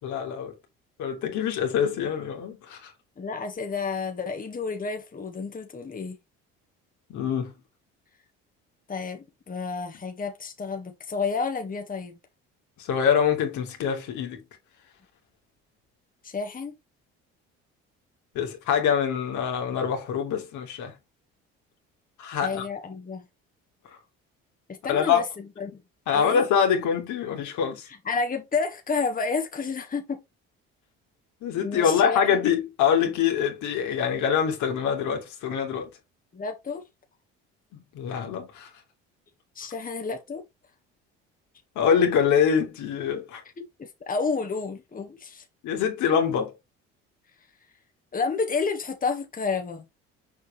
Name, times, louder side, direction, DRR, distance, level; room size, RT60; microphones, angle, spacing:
voice 1, 0.0-0.5 1.0-2.9 7.1-7.5 12.8-14.4 18.3-20.9 22.2-22.6 24.9-25.2 26.1-27.9 31.4-35.9 37.7-38.7 41.8-43.4 45.6-46.5, left 7 dB, 70° left, 2.7 m, -25 dB
voice 2, 3.2-6.2 8.9-12.2 16.2-16.7 22.4-23.2 24.7-25.7 26.1-26.4 28.0-30.2 31.6-32.4 36.3-36.8 39.5-40.4 43.8-45.4 48.1-49.8, left 4 dB, 25° left, 1.7 m, -30 dB
6.9 x 5.1 x 3.3 m
supercardioid pair, 75°, 31 cm